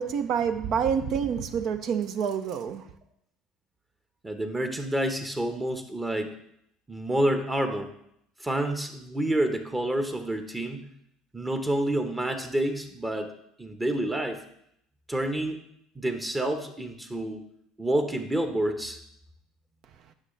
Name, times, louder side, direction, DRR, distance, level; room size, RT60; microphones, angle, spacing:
voice 1, 0.0-2.9, right 7 dB, 55° right, 0.6 m, -27 dB
voice 2, 4.2-6.3 6.9-7.9 8.4-10.8 11.3-13.3 13.6-14.4 15.1-15.6 15.9-17.4 17.8-19.0, right 1 dB, 15° right, 1.0 m, -28 dB
9.6 x 6.3 x 3.3 m
hypercardioid pair, 70°, 0 cm